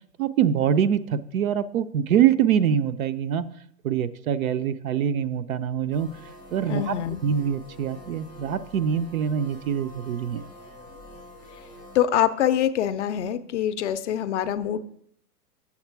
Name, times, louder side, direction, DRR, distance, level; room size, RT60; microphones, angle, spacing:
voice 1, 0.2-3.5 3.8-6.1 6.5-6.9 7.2-10.4, right 8 dB, 60° right, 12 dB, 0.6 m, -24 dB
sound 1, 5.9-12.1, left 1 dB, 15° right, 0.3 m, -46 dB
voice 2, 6.7-7.2 11.9-14.8, left 11 dB, 45° left, 12 dB, 0.5 m, -24 dB
7.2 x 7.2 x 4.5 m, 0.69 s
hypercardioid pair, 130°, 49 cm